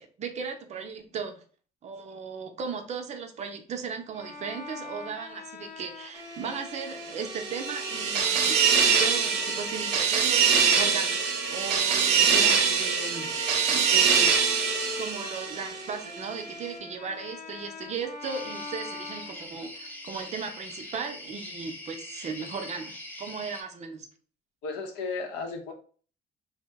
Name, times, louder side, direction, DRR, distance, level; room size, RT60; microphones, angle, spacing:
voice 1, 0.0-1.4 1.8-14.4 15.0-24.1, right 5 dB, 40° right, 5 dB, 0.5 m, -37 dB
Bowed string instrument, 4.1-20.0, left 2 dB, 50° left, 0.9 m, -42 dB
sound 1, 6.9-16.0, right 6 dB, 80° right, 0.6 m, -24 dB
sound 2, 18.2-23.6, left 1 dB, 10° left, 0.6 m, -42 dB
voice 2, 24.6-25.7, left 4 dB, 85° left, 4 dB, 0.7 m, -34 dB
2.7 x 2.0 x 3.3 m, 0.42 s
cardioid pair, 110°, 17 cm